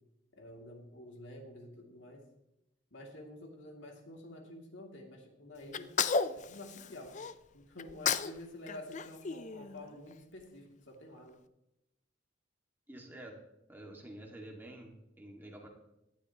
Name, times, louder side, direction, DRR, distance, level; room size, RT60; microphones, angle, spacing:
voice 1, 0.3-2.2 2.9-5.9 6.3-7.1 7.5-11.4, left 1 dB, 75° left, 1 dB, 2.6 m, -49 dB
Sneeze, 5.7-7.3 7.8-8.4 8.7-10.1, left 5 dB, 40° left, 0.5 m, -33 dB
voice 2, 12.9-13.4 13.7-15.7, right 1 dB, 10° right, -1 dB, 2.0 m, -49 dB
18.0 x 12.0 x 3.0 m, 0.90 s
head